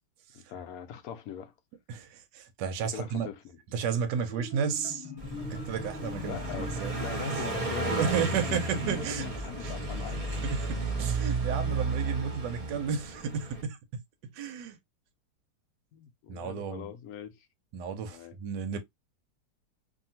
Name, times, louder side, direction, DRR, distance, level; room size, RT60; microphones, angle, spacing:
voice 1, 0.3-1.5 2.9-3.6 6.2-10.3 15.9-17.5 18.1-18.4, left 9 dB, 70° left, 0.9 m, -41 dB
voice 2, 1.9-3.3 3.7-5.1 5.4-6.9 7.9-9.3 9.6-9.7 10.4-14.0 14.3-14.8 16.3-16.9 17.7-18.8, right 7 dB, 90° right, 1.3 m, -33 dB
Marimba xylophone, 4.1-9.3, left 3 dB, 25° left, 0.6 m, -42 dB
Car passing by, 5.2-13.6, right 3 dB, 35° right, 0.6 m, -33 dB
2.7 x 2.6 x 2.7 m
omnidirectional pair, 1.8 m